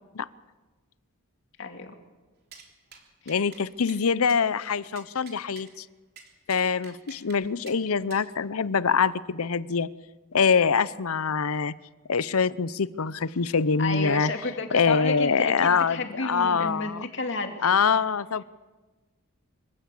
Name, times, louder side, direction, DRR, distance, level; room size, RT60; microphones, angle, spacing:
voice 1, 1.6-1.9 3.2-3.3 13.8-17.8, left 3 dB, 55° left, 4 dB, 2.6 m, -32 dB
sound 1, 2.5-2.7 2.9-3.0 3.3-3.6 3.9-4.0 4.3-4.4 5.0-5.7 6.2-7.4 7.7-7.8 8.1-8.3, right 6 dB, 45° right, 3.4 m, -48 dB
voice 2, 3.3-5.9 6.5-9.9 10.3-11.7 12.1-14.3 14.7-17.1 17.6-18.4, left 5 dB, 75° left, 17 dB, 0.7 m, -24 dB
25.5 x 15.5 x 8.4 m, 1.3 s
head